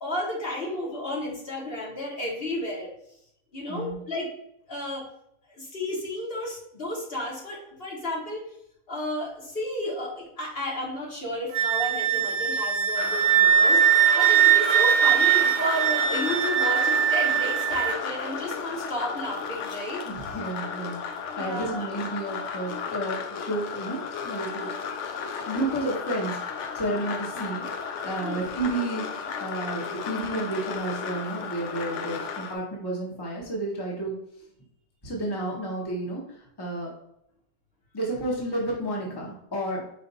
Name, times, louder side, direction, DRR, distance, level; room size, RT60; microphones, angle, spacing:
voice 1, 0.0-2.9 3.5-4.3 4.7-5.0 5.5-8.5 8.9-20.0 21.3-21.9 28.2-28.4, left 1 dB, 55° left, -3 dB, 1.5 m, -32 dB
voice 2, 3.7-4.0 20.0-21.0 21.4-24.7 25.4-26.4 26.7-34.1 35.0-36.9 37.9-39.8, right 2 dB, 20° left, -2 dB, 1.0 m, -31 dB
Wind instrument woodwind instrument, 11.5-17.9, right 9 dB, 65° right, 0.7 m, -21 dB
sound 1, 13.0-32.5, left 6 dB, 80° left, 0.9 m, -34 dB
5.0 x 2.5 x 4.0 m, 0.75 s
omnidirectional pair, 1.2 m